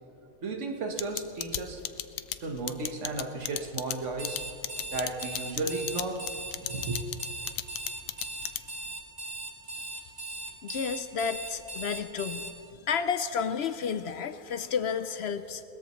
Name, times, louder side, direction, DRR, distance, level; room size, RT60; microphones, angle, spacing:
voice 1, 0.4-1.8 2.4-4.4 4.9-7.0, right 3 dB, 55° right, 1.5 m, -34 dB
sound 1, 1.0-8.9, left 12 dB, 80° left, 1.1 m, -34 dB
Alarm, 4.1-12.5, right 2 dB, 25° right, 1.5 m, -39 dB
voice 2, 10.6-12.5 12.8-15.6, left 6 dB, 65° left, 0.7 m, -31 dB
21.0 x 19.5 x 3.1 m
omnidirectional pair, 1.5 m